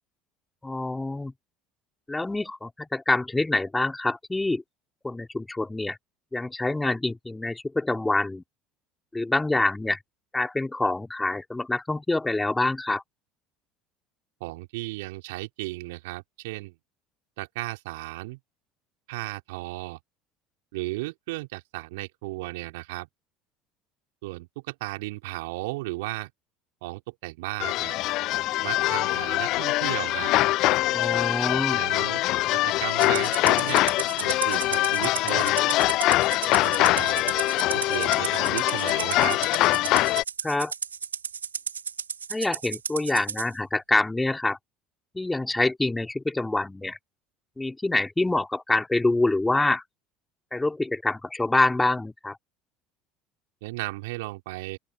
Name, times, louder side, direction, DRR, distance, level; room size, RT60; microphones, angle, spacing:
voice 1, 0.6-1.3 2.1-4.6 5.0-6.0 6.3-8.4 9.1-10.0 10.3-13.0 30.9-31.8 40.4-40.7 42.3-44.6 45.1-47.0 47.6-49.8 50.5-52.4, left 2 dB, 10° left, 3.3 m, -26 dB
voice 2, 14.4-16.7 17.4-18.4 19.1-20.0 20.7-23.1 24.2-26.3 26.8-27.9 28.6-30.3 31.7-32.2 32.5-33.8 34.2-35.6 36.6-37.4 37.7-39.4 53.6-54.8, right 22 dB, 70° right, 4.0 m, -35 dB
sound 1, 27.6-40.2, left 18 dB, 60° left, 0.3 m, -23 dB
Rattle (instrument), 33.0-43.5, right 7 dB, 90° right, 0.9 m, -34 dB
open air
hypercardioid pair, 65°, 0 cm